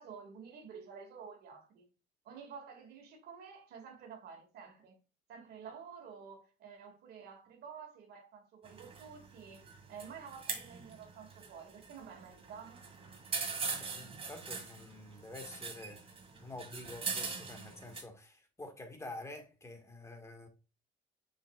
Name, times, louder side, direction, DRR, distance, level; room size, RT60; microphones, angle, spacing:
voice 1, 0.0-1.9 2.2-5.0 5.3-12.9, right 6 dB, 70° right, 2.2 m, -50 dB
sound 1, 8.6-18.0, right 4 dB, 35° right, 2.1 m, -42 dB
voice 2, 13.7-16.1 16.4-20.5, left 2 dB, 15° left, 1.8 m, -48 dB
7.0 x 5.9 x 2.4 m
cardioid pair, 110°, 17 cm